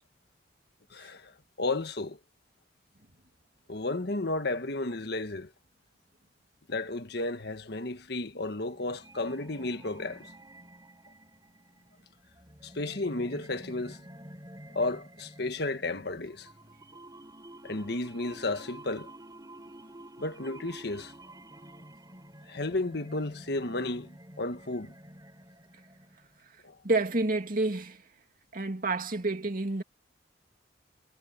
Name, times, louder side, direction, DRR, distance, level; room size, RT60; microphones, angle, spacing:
voice 1, 0.9-1.3 1.6-2.2 3.7-5.5 6.7-10.3 12.6-14.0 14.7-16.5 17.6-19.1 20.2-21.1 22.5-24.9 26.6-26.8, left 2 dB, 60° left, 1.5 m, -33 dB
sound 1, 8.5-26.5, right 1 dB, 20° right, 6.0 m, -50 dB
voice 2, 26.8-28.0 28.5-29.8, right 2 dB, 50° right, 2.5 m, -29 dB
head